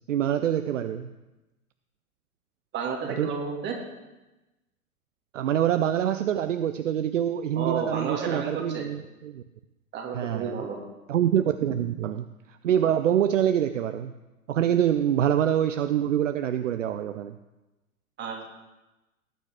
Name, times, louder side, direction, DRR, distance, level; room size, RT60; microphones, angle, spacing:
voice 1, 0.1-1.1 3.1-3.3 5.3-9.4 10.1-10.6 11.1-12.3 12.6-14.1 14.5-17.4, right 10 dB, 60° right, 11 dB, 0.6 m, -25 dB
voice 2, 2.7-3.7 7.6-8.8 9.9-10.8 18.2-18.4, right 5 dB, 25° right, -1 dB, 2.7 m, -31 dB
18.5 x 9.4 x 3.8 m, 1.1 s
figure-of-eight pair, 100°, 44 cm